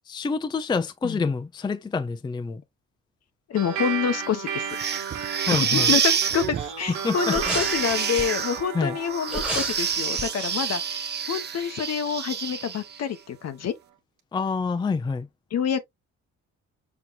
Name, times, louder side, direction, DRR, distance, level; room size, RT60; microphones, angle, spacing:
voice 1, 0.1-2.6 5.5-5.9 7.0-7.6 8.7-9.0 14.3-15.3, left 4 dB, 15° left, 0.4 m, -27 dB
voice 2, 3.5-4.7 5.5-13.7 15.5-15.9, left 8 dB, 60° left, 0.9 m, -27 dB
sound 1, 3.6-12.4, right 7 dB, 85° right, 1.2 m, -35 dB
sound 2, 4.7-13.0, right 7 dB, 35° right, 0.6 m, -28 dB
sound 3, 7.3-8.4 9.3-11.8 12.1-12.2, right 1 dB, 5° right, 1.3 m, -33 dB
5.9 x 2.8 x 2.4 m
cardioid pair, 90°, 30 cm